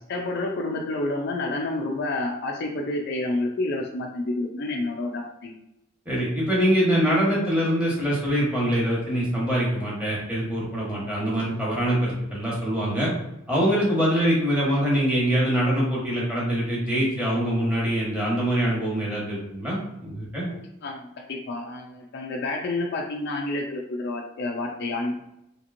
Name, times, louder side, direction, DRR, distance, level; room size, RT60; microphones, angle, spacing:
voice 1, 0.1-5.5 20.5-25.3, left 2 dB, 50° left, 1 dB, 0.4 m, -29 dB
voice 2, 6.1-13.1 13.5-20.4, equal, 5° right, -6 dB, 1.0 m, -24 dB
2.9 x 2.9 x 2.5 m, 0.85 s
head